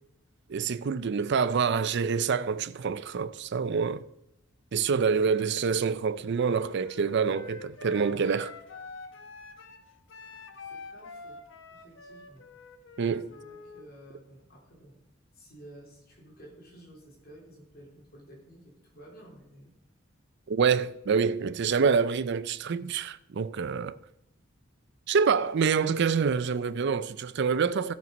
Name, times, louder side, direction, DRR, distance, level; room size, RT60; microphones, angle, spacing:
voice 1, 0.5-4.0 4.7-8.5 13.0-13.3 20.5-24.0 25.1-27.9, right 6 dB, 60° right, 0.5 m, -26 dB
voice 2, 5.2-6.0 10.7-11.4 11.7-12.4 13.3-15.0 15.3-19.7, right 1 dB, 50° left, 3.6 m, -52 dB
Wind instrument woodwind instrument, 6.3-13.8, left 4 dB, 65° left, 1.1 m, -46 dB
13.5 x 6.1 x 5.2 m
head